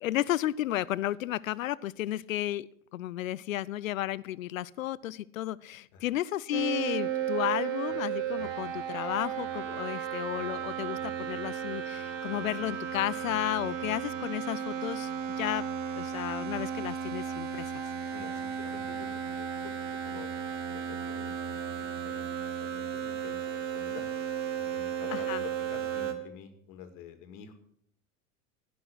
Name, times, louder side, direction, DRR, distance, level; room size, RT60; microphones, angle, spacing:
voice 1, 0.0-15.1 15.4-15.6 16.0-17.8 25.1-25.4, left 14 dB, 80° left, 21 dB, 0.6 m, -33 dB
sound 1, 6.5-26.1, right 8 dB, 65° right, 2.0 m, -34 dB
voice 2, 18.1-24.1 24.6-27.5, left 8 dB, 55° left, 7 dB, 2.2 m, -48 dB
16.5 x 6.1 x 6.3 m, 0.70 s
hypercardioid pair, 85°, 40 cm